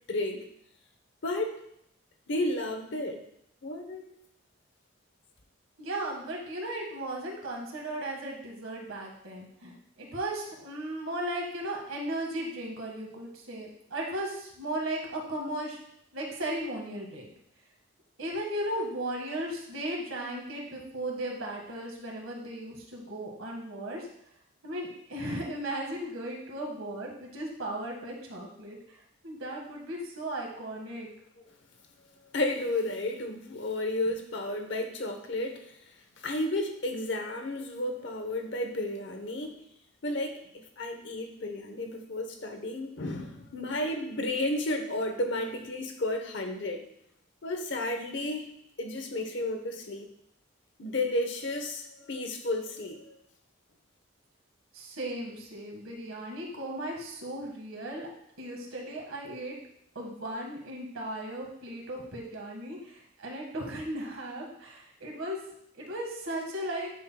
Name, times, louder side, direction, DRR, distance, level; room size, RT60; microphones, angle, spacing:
voice 1, 0.1-0.4 1.2-1.5 2.3-3.2 3.6-4.1 32.3-35.7 36.2-39.6 40.0-40.4 40.8-46.8 47.4-48.5 48.8-50.1 50.8-53.1, left 1 dB, 60° left, 4 dB, 0.9 m, -32 dB
voice 2, 5.8-15.8 16.1-17.3 18.2-24.1 24.6-28.8 29.2-31.1 54.7-58.1 58.4-59.5 59.9-65.4 65.7-66.9, right 1 dB, 85° right, 0 dB, 1.7 m, -36 dB
9.4 x 5.6 x 2.3 m, 0.73 s
head